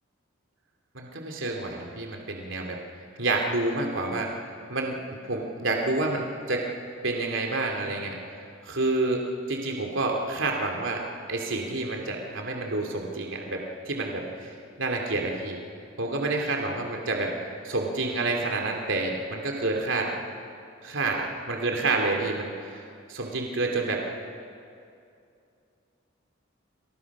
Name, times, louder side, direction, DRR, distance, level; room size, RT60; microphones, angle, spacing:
voice 1, 0.9-2.8 3.2-5.0 5.2-6.7 7.0-8.2 8.6-15.6 16.0-17.3 17.6-20.1 20.8-22.8 23.1-24.0, right 2 dB, 75° right, 1 dB, 2.8 m, -29 dB
28.5 x 28.0 x 6.2 m, 2.5 s
head